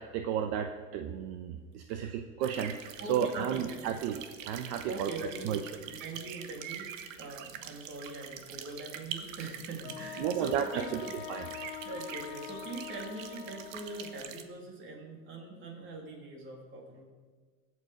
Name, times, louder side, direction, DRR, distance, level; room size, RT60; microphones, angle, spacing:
voice 1, 0.0-5.1 5.4-5.6 10.2-11.0 11.3-11.4, right 8 dB, 60° right, 6 dB, 1.0 m, -33 dB
voice 2, 1.9-2.2 3.0-3.8 4.9-5.6 5.8-11.2 11.8-17.0, right 2 dB, 30° right, 1 dB, 3.0 m, -42 dB
sound 1, 2.4-14.4, right 9 dB, 85° right, 1.3 m, -45 dB
Wind instrument woodwind instrument, 9.8-14.5, left 10 dB, 70° left, 1.0 m, -44 dB
22.5 x 8.2 x 5.0 m, 1.5 s
supercardioid pair, 155°, 38 cm